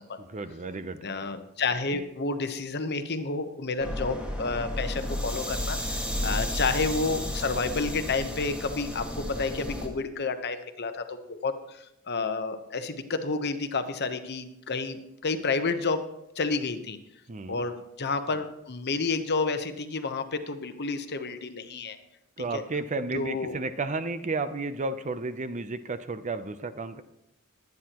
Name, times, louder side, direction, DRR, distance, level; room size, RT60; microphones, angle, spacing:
voice 1, 0.2-1.1 6.0-6.4 17.3-17.6 22.4-27.0, right 3 dB, 35° right, 11 dB, 0.6 m, -33 dB
voice 2, 1.0-16.0 16.4-17.0 17.5-22.0 22.5-22.6 23.1-23.6, left 4 dB, 50° left, 9 dB, 1.0 m, -30 dB
sound 1, 3.8-9.9, equal, 5° right, 1.8 m, -32 dB
21.5 x 9.5 x 3.0 m, 0.84 s
head